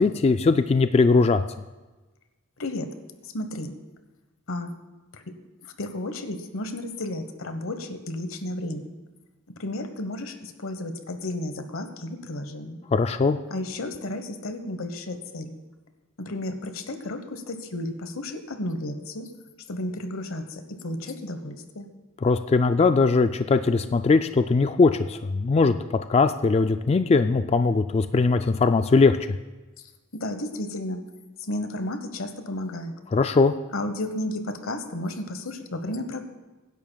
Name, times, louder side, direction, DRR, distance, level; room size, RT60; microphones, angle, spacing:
voice 1, 0.0-1.4 12.9-13.4 22.2-25.8 26.1-29.2 33.1-33.5, left 4 dB, 30° left, 9 dB, 0.3 m, -20 dB
voice 2, 2.6-2.9 3.2-3.7 4.5-4.7 5.1-5.3 5.8-8.9 9.5-12.8 13.5-15.6 16.2-19.3 19.7-21.9 30.1-31.0 31.4-32.9 33.7-36.2, left 1 dB, 85° left, 8 dB, 1.1 m, -33 dB
23.5 x 10.5 x 2.3 m, 1.2 s
head